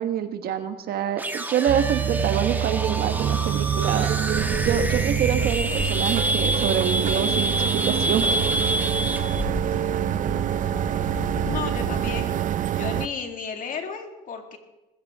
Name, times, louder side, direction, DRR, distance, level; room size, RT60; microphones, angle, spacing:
voice 1, 0.0-4.1 4.6-8.3, right 9 dB, 65° right, 7 dB, 1.5 m, -26 dB
sound 1, 1.2-9.4, right 1 dB, 10° right, 1.3 m, -28 dB
sound 2, 1.7-13.1, right 10 dB, 50° right, 0.6 m, -26 dB
sound 3, 4.3-12.1, left 1 dB, 30° left, 5.2 m, -34 dB
voice 2, 11.5-12.4 12.7-14.6, left 6 dB, 50° left, 4 dB, 2.3 m, -33 dB
19.5 x 16.0 x 3.7 m, 1.0 s
cardioid pair, 110°, 17 cm